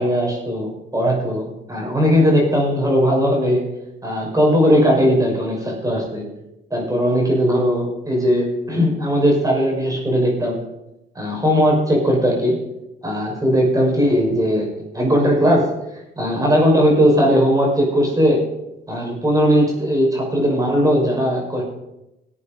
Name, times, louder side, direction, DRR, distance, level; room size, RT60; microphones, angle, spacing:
voice 1, 0.0-3.6 4.0-6.2 6.7-10.6 11.2-12.6 13.0-14.7 14.9-15.7 16.2-18.4 18.9-21.6, equal, 15° right, -1 dB, 5.7 m, -18 dB
18.0 x 8.6 x 5.2 m, 0.90 s
cardioid pair, 90°, 20 cm